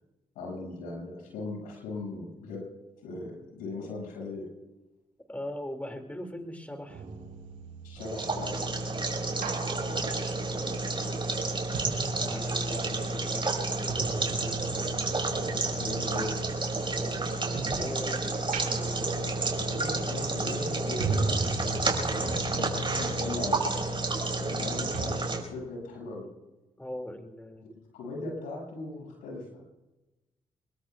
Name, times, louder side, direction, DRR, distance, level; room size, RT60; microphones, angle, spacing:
voice 1, 0.3-2.7 3.0-4.5 7.8-8.6 9.2-10.1 12.1-12.3 15.3-16.3 19.2-19.3 19.6-21.7 22.1-23.6 24.4-26.3 27.9-29.6, left 2 dB, 85° left, -1 dB, 6.7 m, -38 dB
voice 2, 5.3-7.0 10.5-11.6 12.1-14.6 16.9-19.2 26.8-27.8, left 1 dB, 10° left, 5 dB, 2.5 m, -41 dB
sound 1, 6.9-12.9 13.1-18.0 18.4-24.7 24.9-25.1, right 4 dB, 75° right, 4.1 m, -39 dB
sound 2, 8.0-25.4, right 2 dB, 35° right, 5.4 m, -30 dB
27.0 x 22.0 x 2.4 m, 1.0 s
hypercardioid pair, 45°, 14 cm